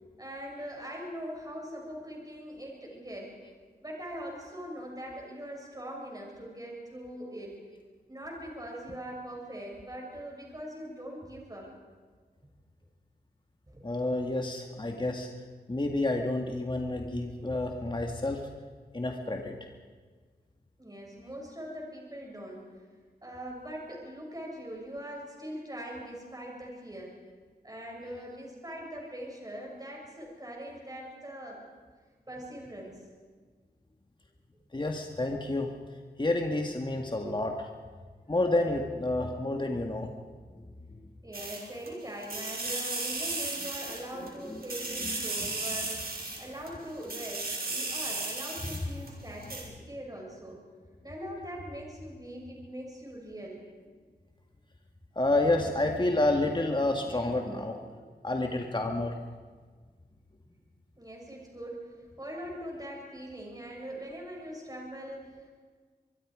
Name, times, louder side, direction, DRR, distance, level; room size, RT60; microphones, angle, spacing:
voice 1, 0.2-3.3 3.8-7.6 8.1-11.7 13.7-13.9 17.8-17.9 20.8-22.7 23.2-27.2 27.6-31.6 32.3-33.0 41.2-46.1 46.4-50.6 51.0-53.7 61.0-65.5, equal, 20° right, -1 dB, 7.1 m, -42 dB
voice 2, 13.8-15.3 15.7-18.5 18.9-19.6 34.7-35.7 36.2-37.7 38.3-40.1 43.6-45.9 48.6-48.8 49.4-49.5 55.2-57.9 58.2-59.2, left 2 dB, 30° left, 2 dB, 2.0 m, -30 dB
sound 1, 41.3-41.9 42.2-44.3 44.6-46.7 47.0-49.1 49.4-49.6, right 2 dB, 60° right, 5.7 m, -35 dB
25.5 x 22.5 x 5.1 m, 1.5 s
wide cardioid pair, 75°, 17 cm